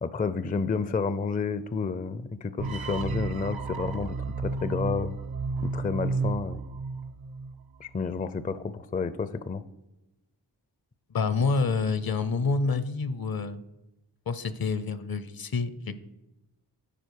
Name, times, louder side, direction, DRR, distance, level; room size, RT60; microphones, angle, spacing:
voice 1, 0.0-5.2 5.6-6.6 7.8-9.6, left 5 dB, 20° left, 14 dB, 0.4 m, -30 dB
sound 1, 2.6-7.7, right 3 dB, 55° right, 0.7 m, -32 dB
voice 2, 11.1-13.6 14.3-16.0, left 4 dB, 55° left, 14 dB, 0.7 m, -28 dB
10.0 x 4.6 x 4.6 m, 0.95 s
cardioid pair, 45°, 43 cm